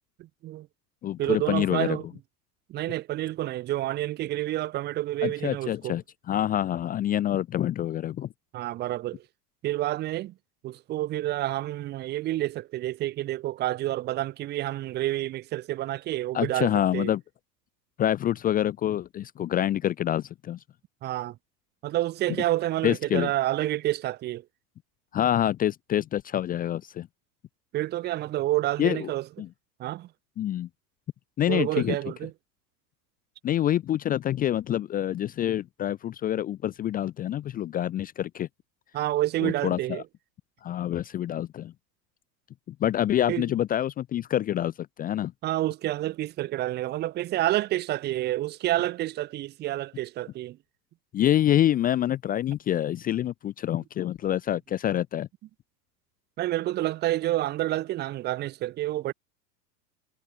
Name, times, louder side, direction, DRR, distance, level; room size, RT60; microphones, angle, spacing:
voice 1, 0.2-0.7 1.2-2.0 2.7-6.0 8.5-9.2 9.6-10.3 10.6-17.1 21.0-21.4 21.8-24.4 27.7-29.3 29.8-30.1 31.5-32.3 38.9-40.0 43.3-43.5 45.4-50.6 56.4-59.1, right 15 dB, 20° right, 0.6 m, -29 dB
voice 2, 1.0-2.0 5.2-8.3 16.3-17.2 18.0-20.6 22.8-23.3 25.1-27.1 28.8-29.1 29.4-29.5 30.4-30.7 31.4-32.0 33.4-38.5 39.4-40.0 40.6-41.7 42.8-45.3 51.1-55.3, left 11 dB, 20° left, 0.6 m, -26 dB
figure-of-eight pair, 85°, 50 cm